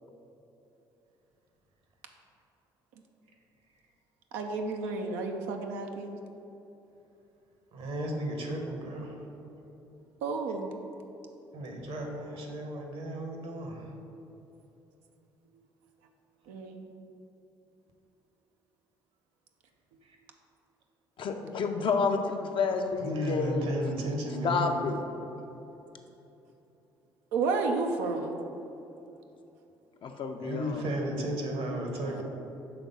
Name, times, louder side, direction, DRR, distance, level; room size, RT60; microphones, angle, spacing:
voice 1, 4.3-6.2 10.2-10.7 16.5-16.9 27.3-28.4 32.1-32.2, right 4 dB, 80° right, 3 dB, 0.5 m, -31 dB
voice 2, 7.7-9.2 11.5-13.9 20.0-20.2 23.0-24.7 30.4-32.2, right 1 dB, 65° right, 2 dB, 1.1 m, -34 dB
voice 3, 21.2-23.7 24.4-25.0 30.0-30.9, left 4 dB, 50° left, 5 dB, 0.6 m, -29 dB
5.8 x 3.6 x 5.4 m, 3.0 s
hypercardioid pair, 55°, 11 cm